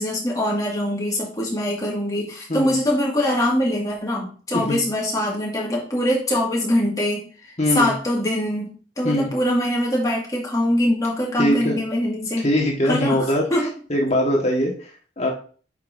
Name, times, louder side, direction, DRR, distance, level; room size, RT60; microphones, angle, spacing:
voice 1, 0.0-8.7 9.0-12.5 12.8-13.2 13.5-13.7, left 1 dB, 20° left, -3 dB, 2.1 m, -23 dB
voice 2, 7.6-7.9 9.0-9.3 11.4-11.7 12.4-13.4 13.9-14.9 15.2-15.3, equal, 35° left, 0 dB, 1.7 m, -21 dB
8.3 x 5.5 x 2.7 m, 0.40 s
head